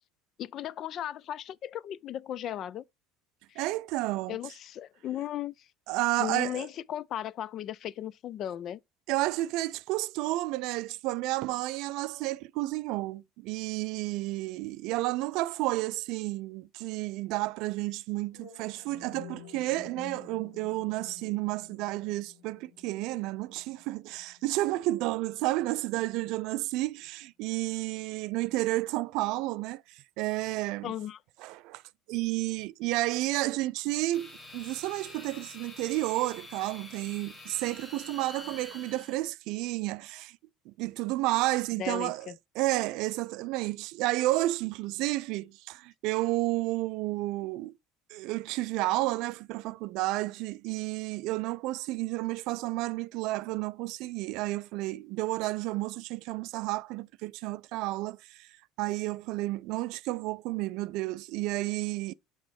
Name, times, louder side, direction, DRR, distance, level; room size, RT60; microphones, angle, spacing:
voice 1, 0.4-2.8 3.5-3.7 4.3-5.5 6.2-8.8 30.8-31.2 41.8-42.4, left 11 dB, 50° left, 0.4 m, -36 dB
voice 2, 3.6-4.4 5.9-6.7 9.1-30.9 31.4-31.8 32.1-40.4 40.7-47.7 48.1-58.5 58.8-62.1, right 18 dB, 65° right, 0.4 m, -31 dB
sound 1, 18.3-26.3, left 6 dB, 90° left, 2.0 m, -52 dB
sound 2, 34.1-39.2, left 2 dB, 20° left, 1.8 m, -47 dB
6.1 x 3.7 x 4.6 m
supercardioid pair, 90°, 0 cm